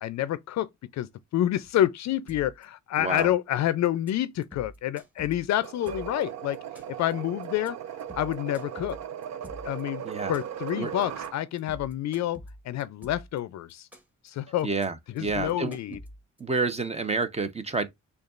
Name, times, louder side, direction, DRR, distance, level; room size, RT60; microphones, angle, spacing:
voice 1, 0.0-6.6 7.0-7.8 8.2-9.0 9.6-10.0 10.3-12.4 12.6-13.9 14.2-14.7 15.1-16.0, left 12 dB, 65° left, 0.5 m, -28 dB
sound 1, 2.3-2.6 2.9-3.5 3.8-4.1 4.4-6.2 6.5-7.1 7.4-7.7 8.0-9.8 10.1-10.7 11.0-11.3 11.6-13.4 13.7-14.3 14.6-14.8 15.2-16.4, left 1 dB, 5° right, 1.3 m, -46 dB
voice 2, 3.0-3.3 10.0-10.3 10.8-10.9 14.6-15.8 16.4-17.9, right 3 dB, 20° right, 0.7 m, -29 dB
sound 2, 5.6-11.4, right 9 dB, 60° right, 0.6 m, -38 dB
6.5 x 2.4 x 2.4 m
cardioid pair, 90°, 30 cm